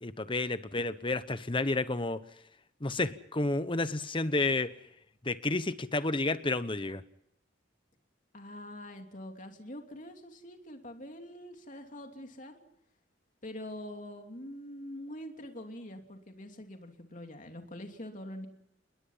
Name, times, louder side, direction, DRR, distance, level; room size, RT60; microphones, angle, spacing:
voice 1, 0.0-2.2 2.8-4.7 5.2-7.0, left 2 dB, 25° left, 13 dB, 1.0 m, -30 dB
voice 2, 8.3-12.6 13.4-18.5, left 1 dB, 45° left, 4 dB, 2.9 m, -44 dB
28.5 x 21.0 x 5.7 m, 0.74 s
head